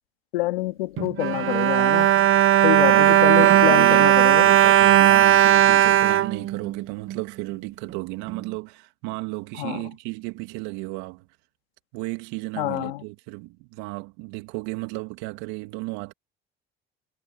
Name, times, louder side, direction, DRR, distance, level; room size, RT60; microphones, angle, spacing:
voice 1, 0.3-2.1 2.6-4.5 9.6-9.8 12.6-13.0, left 19 dB, 85° left, 2.0 m, -26 dB
Bowed string instrument, 1.0-7.2 7.9-8.0 8.3-8.4, right 11 dB, 45° right, 0.8 m, -17 dB
voice 2, 2.8-11.3 11.9-16.1, right 23 dB, 75° right, 2.7 m, -34 dB
hypercardioid pair, 70°, 29 cm